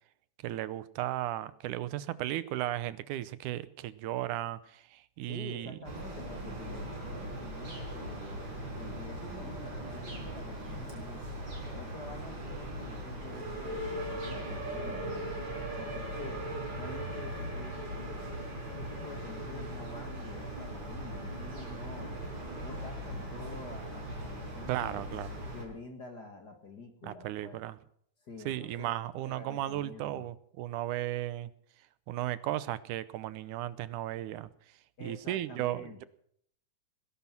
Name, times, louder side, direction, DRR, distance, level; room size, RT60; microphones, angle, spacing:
voice 1, 0.4-5.8 24.7-25.4 27.0-27.8 28.5-31.5 32.1-34.5 35.0-36.0, right 14 dB, 85° right, 16 dB, 2.3 m, -35 dB
voice 2, 5.3-8.4 8.7-11.4 11.7-15.3 15.8-16.5 16.8-18.2 18.7-22.2 22.6-25.1 25.5-27.6 28.2-28.9 29.3-30.3 35.0-36.0, left 3 dB, 40° left, 6 dB, 1.9 m, -48 dB
sound 1, 5.8-25.6, right 1 dB, 35° right, 5.2 m, -39 dB
19.0 x 11.5 x 6.0 m, 0.65 s
omnidirectional pair, 3.5 m